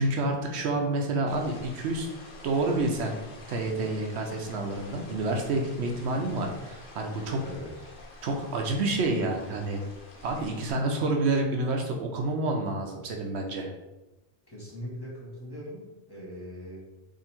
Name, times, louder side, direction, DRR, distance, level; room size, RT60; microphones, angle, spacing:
voice 1, 0.0-2.1 2.4-3.2 3.5-7.4 8.2-9.8 10.2-13.7, right 2 dB, 75° right, 2 dB, 0.9 m, -28 dB
sound 1, 1.3-10.7, left 2 dB, 55° left, 0.9 m, -48 dB
voice 2, 7.4-7.8 14.5-15.8 16.1-16.9, equal, 20° left, -5 dB, 1.1 m, -41 dB
3.7 x 2.7 x 4.3 m, 1.0 s
omnidirectional pair, 1.2 m